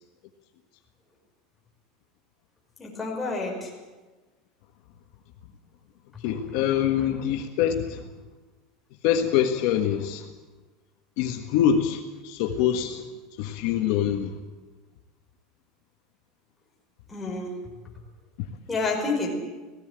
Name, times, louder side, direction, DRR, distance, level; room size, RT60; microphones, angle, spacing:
voice 1, 2.8-3.7 17.1-17.5 18.7-19.3, left 3 dB, 10° left, -2 dB, 5.1 m, -29 dB
voice 2, 6.2-8.0 9.0-10.3 11.2-13.1 13.4-14.4, left 9 dB, 60° left, 4 dB, 1.6 m, -25 dB
18.0 x 16.0 x 9.1 m, 1.3 s
supercardioid pair, 160°, 0 cm